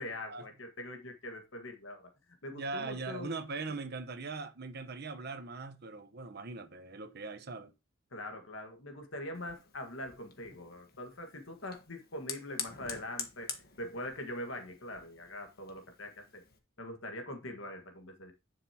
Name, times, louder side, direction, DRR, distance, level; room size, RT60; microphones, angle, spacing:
voice 1, 0.0-2.1 2.4-3.3 8.1-16.4 16.8-18.3, left 1 dB, 75° left, 1.7 m, -43 dB
voice 2, 2.5-7.7, right 3 dB, 55° right, 1.0 m, -40 dB
Fire, 9.3-16.6, left 7 dB, 50° left, 1.4 m, -47 dB
11.0 x 6.7 x 2.9 m
head